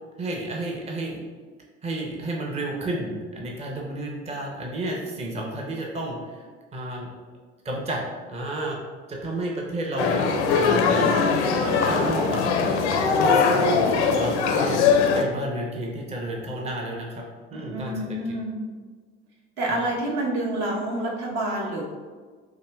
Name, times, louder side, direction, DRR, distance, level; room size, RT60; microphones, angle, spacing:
voice 1, 0.2-1.2 1.8-6.4 6.7-7.1 7.6-8.0 8.3-8.8 9.1-12.4 12.9-14.8 15.1-17.2 17.5-18.2 19.7-19.8, right 1 dB, 20° right, -1 dB, 0.6 m, -32 dB
sound 1, 10.0-15.2, left 5 dB, 80° left, 0.5 m, -21 dB
voice 2, 17.5-18.6 19.6-21.8, right 1 dB, 55° right, -2 dB, 0.9 m, -28 dB
4.7 x 2.6 x 2.2 m, 1.5 s
hypercardioid pair, 65°, 34 cm